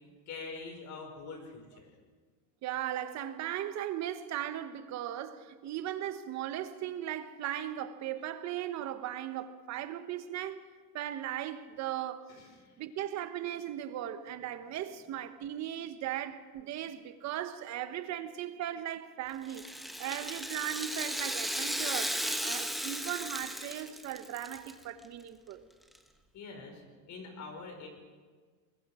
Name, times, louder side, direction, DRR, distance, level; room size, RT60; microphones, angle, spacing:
voice 1, 0.3-1.9 12.3-12.8 26.3-27.9, left 4 dB, 35° left, 5.4 m, -45 dB
voice 2, 2.6-10.7 10.9-12.3 12.8-19.7 20.0-25.6, right 11 dB, 35° right, 1.3 m, -37 dB
Rattle (instrument), 19.4-24.7 25.0-25.1 25.9-26.0, equal, ahead, 1.2 m, -35 dB
24.5 x 21.5 x 5.0 m
supercardioid pair, 140°, 49 cm